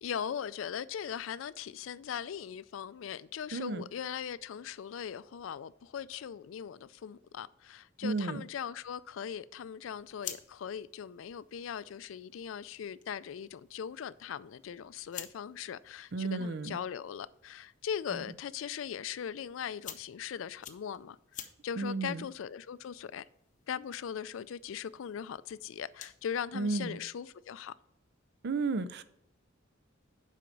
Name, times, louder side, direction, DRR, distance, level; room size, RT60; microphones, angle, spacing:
voice 1, 0.0-23.3 23.7-27.7, left 8 dB, 75° left, 0.4 m, -40 dB
voice 2, 3.5-3.8 8.0-8.4 16.1-16.8 21.8-22.2 26.5-27.0 28.4-29.0, right 3 dB, 55° right, 0.5 m, -33 dB
sound 1, 9.9-26.3, left 9 dB, 40° left, 0.7 m, -52 dB
7.6 x 5.1 x 5.2 m
head